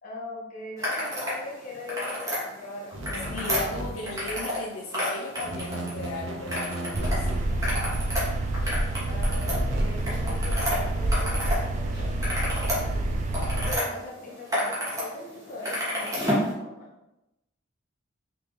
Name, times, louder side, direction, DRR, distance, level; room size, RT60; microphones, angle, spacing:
voice 1, 0.0-3.4 9.1-12.8 13.6-16.9, left 2 dB, 40° left, -3 dB, 1.0 m, -41 dB
sound 1, 0.8-1.4 1.7-2.4 2.9-4.6 4.9-6.1 6.5-7.2 7.5-11.6 11.9-13.8 14.3-15.0 15.3-16.5, equal, 15° right, 1.1 m, -30 dB
sound 2, 2.9-4.5 5.4-8.0 9.3-10.5, right 1 dB, 70° right, 0.7 m, -37 dB
voice 2, 3.3-7.5, left 2 dB, 75° left, 0 dB, 0.5 m, -36 dB
sound 3, 6.9-13.8, right 1 dB, 35° right, 0.4 m, -27 dB
4.1 x 3.3 x 3.0 m, 0.96 s
head